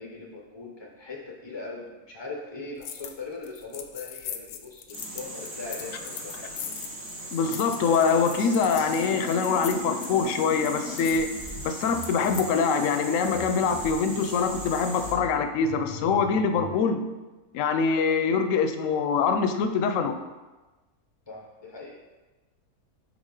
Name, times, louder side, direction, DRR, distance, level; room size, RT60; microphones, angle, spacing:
voice 1, 0.0-6.4 11.2-11.4 17.5-17.7 21.3-22.0, left 3 dB, 35° left, -1 dB, 0.4 m, -40 dB
sound 1, 2.8-3.2 3.4-12.5, left 9 dB, 85° left, 1.1 m, -40 dB
sound 2, 4.9-15.1, right 1 dB, 80° right, 2.8 m, -39 dB
voice 2, 7.3-11.3 11.6-17.0 17.5-20.2, left 5 dB, 65° left, 8 dB, 0.9 m, -24 dB
sound 3, 8.6-12.4 13.2-16.8, left 4 dB, 50° right, 2.1 m, -40 dB
9.0 x 3.7 x 3.8 m, 1.2 s
omnidirectional pair, 1.6 m